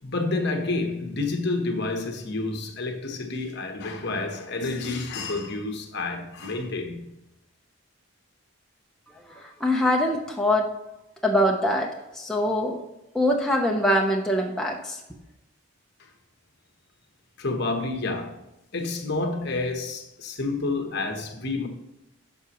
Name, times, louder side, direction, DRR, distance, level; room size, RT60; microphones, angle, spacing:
voice 1, 0.0-7.1 16.0-16.1 17.4-18.4 18.7-21.7, left 3 dB, 50° left, 1.1 m, -29 dB
voice 2, 9.6-10.6 11.2-11.9 12.1-12.8 13.1-15.0, left 1 dB, ahead, 0.6 m, -23 dB
11.5 x 5.9 x 3.0 m
head